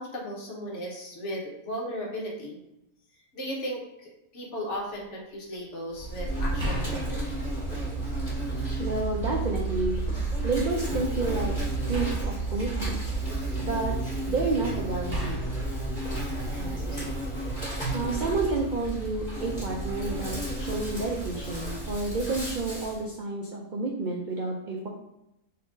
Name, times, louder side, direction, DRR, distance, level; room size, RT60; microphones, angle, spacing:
voice 1, 0.0-2.6 3.3-7.3, equal, 55° left, -2 dB, 1.3 m, -36 dB
sound 1, 5.0-5.1 6.6-8.4 8.9-9.8 11.9-13.8 15.1-16.9 18.0-18.2, left 1 dB, 40° right, 1.0 m, -37 dB
Insect, 6.0-23.0, right 2 dB, 35° left, 1.8 m, -31 dB
voice 2, 8.8-10.0 10.4-11.5 11.9-13.0 13.6-14.0 14.3-15.4 16.6-17.1 17.9-24.9, right 3 dB, 70° right, -1 dB, 0.4 m, -30 dB
4.1 x 2.7 x 3.6 m, 0.84 s
omnidirectional pair, 1.6 m